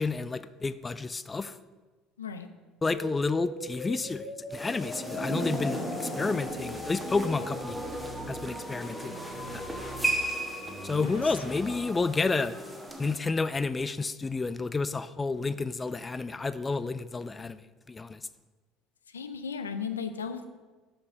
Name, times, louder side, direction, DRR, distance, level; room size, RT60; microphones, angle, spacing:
voice 1, 0.0-1.6 2.8-7.8 8.3-9.3 9.5-9.6 10.8-12.5 13.0-17.6 17.9-18.2, left 3 dB, 20° left, 14 dB, 0.4 m, -30 dB
sound 1, 2.9-12.9, left 3 dB, 45° left, 2.3 m, -43 dB
sound 2, 4.5-13.1, right 1 dB, 5° right, 1.4 m, -35 dB
sound 3, 6.4-8.4 8.8-10.2 10.6-12.2, right 2 dB, 60° right, 2.3 m, -47 dB
voice 2, 10.9-11.4 19.1-20.5, left 6 dB, 85° left, 9 dB, 0.5 m, -36 dB
6.6 x 5.4 x 7.1 m, 1.3 s
hypercardioid pair, 65°, 0 cm